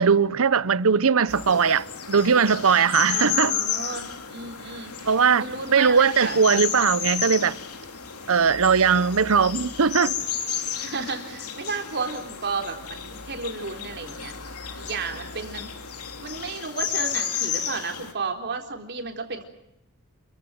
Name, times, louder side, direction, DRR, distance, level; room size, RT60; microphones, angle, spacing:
voice 1, 0.0-3.5 5.1-5.4 5.7-7.6 8.3-10.2, right 6 dB, 65° right, 0.8 m, -20 dB
sound 1, 1.3-18.1, left 8 dB, 90° left, 2.9 m, -32 dB
voice 2, 3.0-5.1 5.4-6.4 10.8-15.7 16.2-19.4, right 4 dB, 50° right, 3.9 m, -33 dB
29.0 x 16.0 x 9.2 m
head